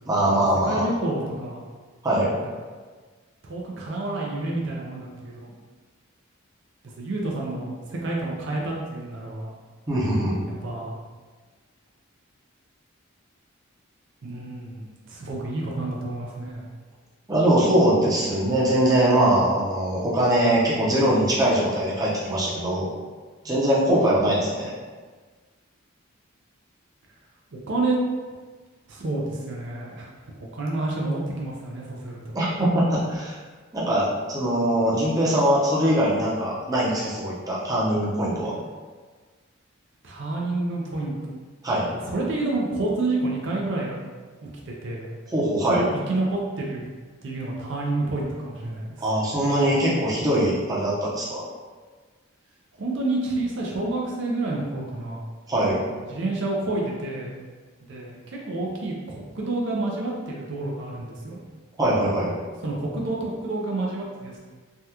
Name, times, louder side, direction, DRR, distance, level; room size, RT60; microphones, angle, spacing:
voice 1, 0.1-0.9 2.0-2.3 9.9-10.4 17.3-22.9 23.4-24.7 32.3-33.4 33.7-38.5 41.6-41.9 45.3-45.8 49.0-51.4 55.5-55.8 61.8-62.3, right 1 dB, 20° right, -7 dB, 0.6 m, -22 dB
voice 2, 0.6-1.6 3.4-5.5 7.0-9.5 10.6-11.0 14.2-16.6 27.5-28.0 28.9-30.1 30.4-32.4 40.0-41.1 41.9-44.0 44.4-45.1 45.7-46.9 47.2-49.0 52.8-55.2 56.1-57.3 57.9-61.4 62.6-64.4, right 2 dB, 60° right, -3 dB, 0.5 m, -29 dB
3.5 x 2.2 x 2.8 m, 1.4 s
head